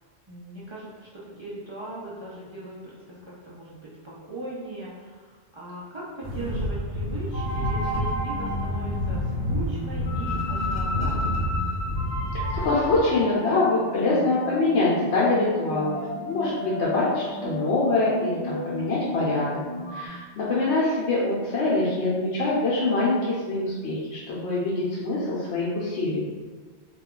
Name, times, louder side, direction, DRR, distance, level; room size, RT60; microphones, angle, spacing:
voice 1, 0.3-11.6, right 2 dB, 40° right, -8 dB, 0.4 m, -39 dB
sound 1, 6.2-13.1, left 1 dB, 75° right, 1.0 m, -29 dB
sound 2, 7.3-20.1, left 1 dB, 45° left, 0.7 m, -33 dB
voice 2, 12.6-19.6 19.9-26.2, left 2 dB, 80° left, -7 dB, 0.9 m, -24 dB
2.4 x 2.2 x 3.6 m, 1.4 s
omnidirectional pair, 1.1 m